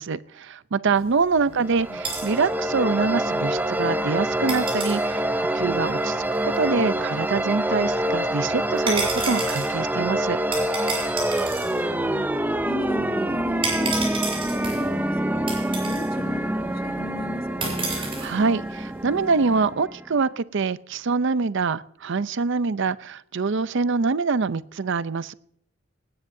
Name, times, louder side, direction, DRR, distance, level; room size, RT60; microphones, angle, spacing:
voice 1, 0.0-10.4 17.9-25.3, right 4 dB, 60° right, 15 dB, 0.6 m, -25 dB
sound 1, 1.0-19.7, right 3 dB, 25° right, 7.6 m, -35 dB
voice 2, 1.5-2.0 6.8-7.1 11.6-12.3 12.6-14.2 14.5-15.5 15.8-17.8, left 2 dB, 45° left, 7 dB, 1.3 m, -38 dB
sound 2, 1.6-20.2, right 1 dB, 10° right, 0.6 m, -26 dB
19.0 x 17.0 x 2.7 m, 0.70 s
head